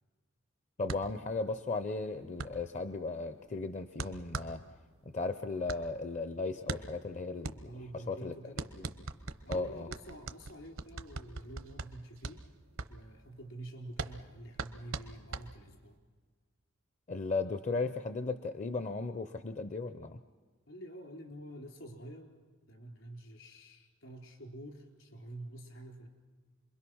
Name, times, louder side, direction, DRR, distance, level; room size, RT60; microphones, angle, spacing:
voice 1, 0.8-4.6 5.1-7.6 8.1-8.3 8.8-8.9 9.5-9.9 17.1-20.2, left 3 dB, 35° left, 11 dB, 0.6 m, -36 dB
sound 1, 0.8-16.0, right 3 dB, 80° right, 1.0 m, -42 dB
voice 2, 7.6-8.7 9.4-12.4 12.9-16.0 20.7-22.3 22.7-26.1, right 1 dB, 70° left, 4 dB, 3.7 m, -48 dB
27.0 x 22.0 x 6.3 m, 1.4 s
head